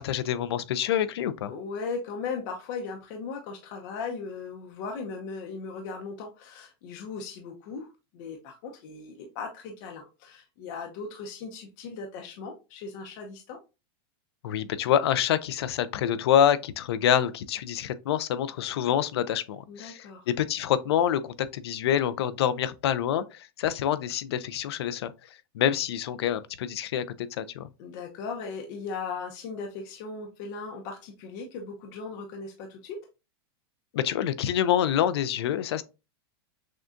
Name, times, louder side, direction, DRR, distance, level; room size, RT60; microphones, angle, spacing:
voice 1, 0.0-1.5 14.4-25.1 25.5-27.0 27.3-27.7 33.9-35.8, left 10 dB, 80° left, 0.4 m, -26 dB
voice 2, 1.5-13.6 19.7-20.3 27.8-33.0, left 4 dB, 45° left, 0.7 m, -38 dB
6.3 x 2.3 x 2.5 m
supercardioid pair, 155°, 13 cm